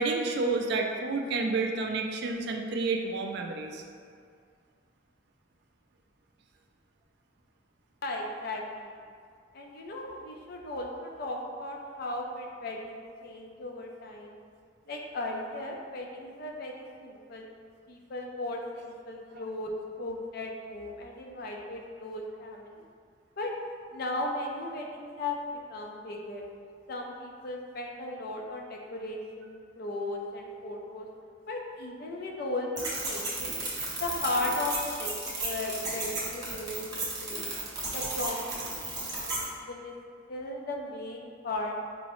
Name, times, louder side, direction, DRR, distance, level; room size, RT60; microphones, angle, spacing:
voice 1, 0.0-3.8 19.3-19.4, right 3 dB, 55° right, 2 dB, 0.3 m, -30 dB
voice 2, 8.0-8.9 9.5-14.4 14.9-17.5 17.9-22.8 23.4-23.5 23.9-25.4 25.7-26.4 26.9-31.1 31.5-33.5 34.0-36.9 37.2-37.5 37.9-38.5 38.8-39.9 40.3-41.8, left 2 dB, 50° left, 1 dB, 0.4 m, -36 dB
sound 1, 32.8-39.5, right 2 dB, 20° right, 0.7 m, -34 dB
4.6 x 2.0 x 3.0 m, 2.1 s
head